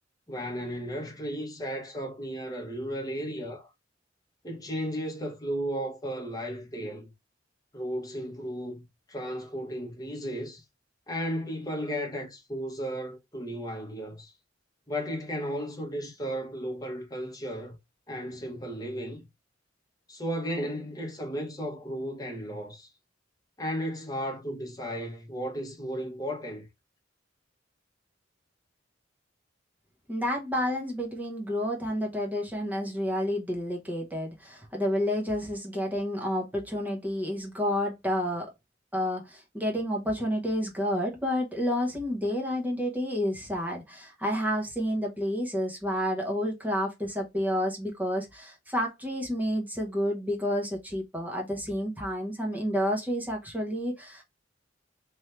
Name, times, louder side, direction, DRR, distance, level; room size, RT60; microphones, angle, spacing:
voice 1, 0.3-3.7 4.4-7.1 7.7-10.6 11.1-14.3 14.9-17.8 18.1-19.2 20.1-22.9 23.6-26.7, equal, 20° left, 1.0 m, -34 dB
voice 2, 30.1-38.5 38.9-54.2, equal, 10° right, 0.9 m, -30 dB
3.2 x 2.7 x 4.3 m
head